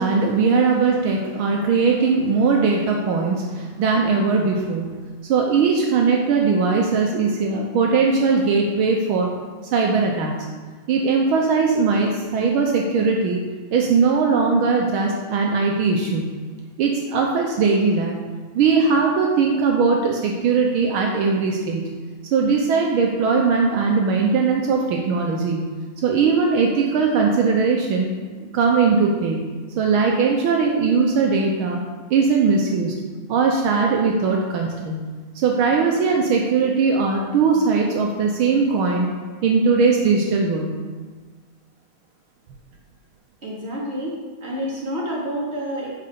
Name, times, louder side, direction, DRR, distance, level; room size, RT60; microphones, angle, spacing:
voice 1, 0.0-5.0 5.3-9.3 9.7-10.3 10.9-13.4 13.7-16.3 16.8-18.2 18.5-21.9 22.3-25.7 26.0-28.1 28.4-29.5 29.8-31.8 32.1-33.0 33.3-35.0 35.3-39.1 39.4-40.8, right 4 dB, 75° right, 0 dB, 1.2 m, -20 dB
voice 2, 43.4-44.1 44.4-45.9, equal, 20° right, -7 dB, 2.8 m, -28 dB
10.5 x 4.8 x 6.8 m, 1.5 s
omnidirectional pair, 3.4 m